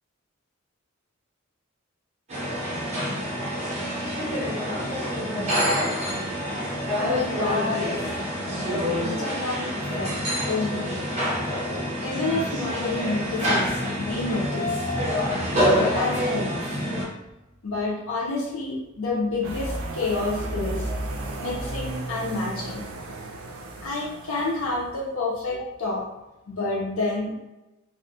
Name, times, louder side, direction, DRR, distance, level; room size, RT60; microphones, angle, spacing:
sound 1, 2.3-17.0, equal, 35° right, 0.9 m, -27 dB
voice 1, 6.9-8.0 8.7-9.7 10.0-10.1 10.5-11.0 12.0-14.9 15.5-16.7 17.6-20.9 21.4-22.8 23.8-26.1 26.5-27.4, left 2 dB, 85° left, -4 dB, 0.6 m, -29 dB
sound 2, 19.4-24.9, right 3 dB, 75° right, 0.4 m, -36 dB
2.4 x 2.1 x 2.6 m, 0.98 s
head